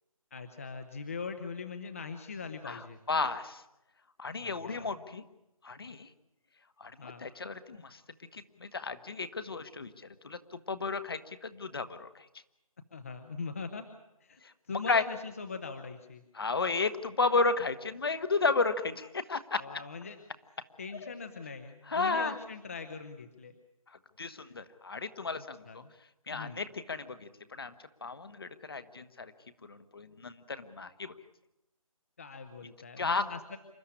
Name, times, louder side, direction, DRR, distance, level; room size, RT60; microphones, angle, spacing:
voice 1, 0.3-3.0 4.4-5.0 7.0-7.3 12.9-13.8 14.2-14.4 14.7-16.2 19.6-20.3 20.8-23.5 24.3-24.5 25.4-25.9 26.3-26.6 32.2-33.6, left 4 dB, 25° left, 7 dB, 0.9 m, -41 dB
voice 2, 3.1-3.6 4.2-5.2 5.6-6.1 6.8-6.9 7.2-8.0 8.3-9.9 10.2-10.4 10.7-12.3 14.4-14.5 14.9-15.0 16.3-19.6 21.9-22.4 24.2-25.8 26.3-27.3 27.6-27.7 28.0-29.3 29.7-31.1 33.0-33.2, left 4 dB, 40° left, 11 dB, 1.3 m, -32 dB
27.5 x 13.0 x 9.8 m, 0.90 s
figure-of-eight pair, 175°, 18 cm